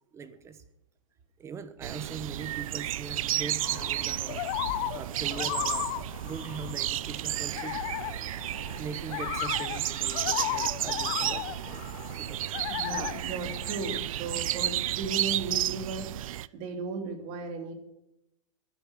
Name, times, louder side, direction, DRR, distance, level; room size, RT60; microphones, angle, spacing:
voice 1, 0.1-0.6 1.4-4.5 4.9-5.9 6.2-7.8 8.7-11.9 12.2-13.1, right 5 dB, 15° right, 12 dB, 1.0 m, -41 dB
sound 1, 1.8-16.5, right 13 dB, 75° right, 0.5 m, -32 dB
sound 2, 3.6-14.5, left 15 dB, 35° left, 0.8 m, -36 dB
voice 2, 3.8-4.3 12.7-17.7, right 4 dB, 40° right, 5 dB, 3.0 m, -36 dB
11.5 x 11.0 x 7.4 m, 0.86 s
hypercardioid pair, 150°, 18 cm